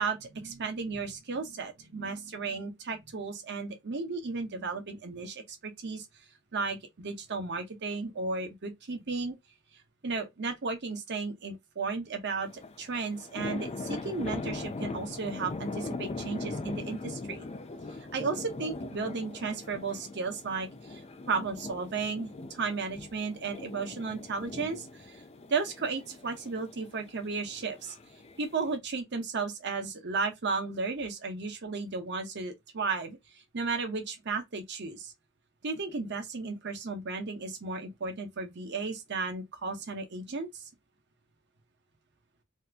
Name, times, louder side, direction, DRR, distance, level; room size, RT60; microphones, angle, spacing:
voice 1, 0.0-6.1 6.5-9.4 10.0-17.5 18.0-25.2 25.5-27.9 28.4-35.1 35.6-40.7, right 4 dB, 55° right, 0.8 m, -34 dB
sound 1, 12.4-28.8, left 3 dB, 30° left, 0.4 m, -41 dB
2.7 x 2.4 x 3.4 m
head